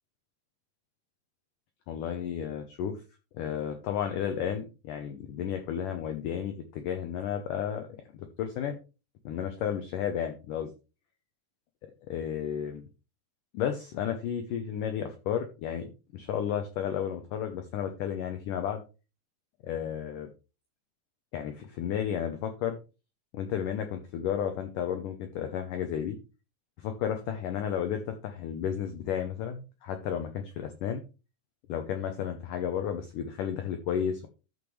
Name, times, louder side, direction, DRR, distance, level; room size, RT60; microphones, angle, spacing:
voice 1, 1.9-3.0 3.3-7.9 8.1-8.8 9.3-10.7 12.1-12.9 13.5-18.8 19.6-20.3 21.3-22.8 23.3-26.2 26.8-31.0 31.7-34.3, left 9 dB, 85° left, 6 dB, 1.8 m, -32 dB
14.0 x 5.4 x 3.2 m, 0.31 s
omnidirectional pair, 4.9 m